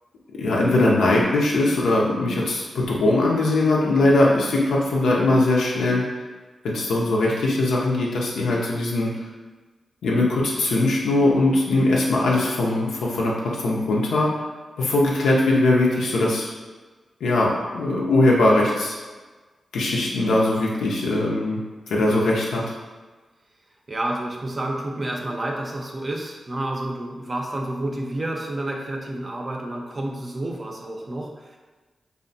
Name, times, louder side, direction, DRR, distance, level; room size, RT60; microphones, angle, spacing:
voice 1, 0.4-6.0 6.6-9.1 10.0-14.3 14.8-16.5 17.2-19.0 19.7-21.6 21.9-22.6, left 2 dB, 90° left, -3 dB, 0.4 m, -20 dB
voice 2, 23.9-31.6, right 1 dB, 45° right, 0 dB, 0.5 m, -29 dB
2.6 x 2.1 x 2.6 m, 1.3 s
cardioid pair, 45°, 0 cm